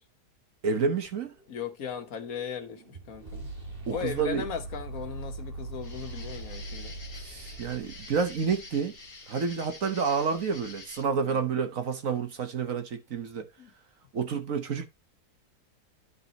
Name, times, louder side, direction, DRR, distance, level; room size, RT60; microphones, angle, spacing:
voice 1, 0.6-1.3 3.9-4.4 7.2-8.9 9.3-13.5 14.1-14.9, right 5 dB, 55° right, 1.4 m, -29 dB
sound 1, 1.0-9.2, right 2 dB, 35° right, 2.2 m, -42 dB
voice 2, 1.5-3.5 3.9-6.9 11.2-11.4 13.6-13.7, left 8 dB, 60° left, 1.4 m, -37 dB
sound 2, 5.8-11.0, left 3 dB, 35° left, 2.7 m, -47 dB
11.0 x 5.5 x 2.9 m
omnidirectional pair, 1.7 m